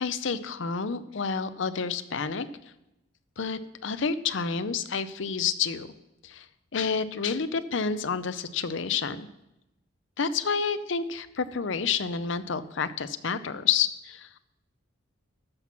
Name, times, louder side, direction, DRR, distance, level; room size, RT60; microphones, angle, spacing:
voice 1, 0.0-2.5 3.4-5.9 6.2-6.5 6.7-9.3 10.2-14.4, left 6 dB, 65° left, 13 dB, 0.6 m, -29 dB
14.0 x 6.0 x 5.9 m, 0.90 s
head